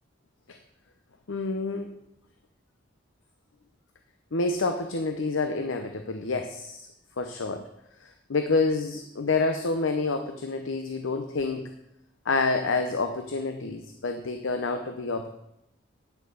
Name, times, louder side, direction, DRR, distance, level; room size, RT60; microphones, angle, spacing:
voice 1, 1.3-1.9 4.3-6.9 7.2-7.7 8.0-11.7 12.2-15.3, left 3 dB, 80° left, 6 dB, 0.8 m, -28 dB
9.7 x 6.5 x 6.9 m, 0.85 s
head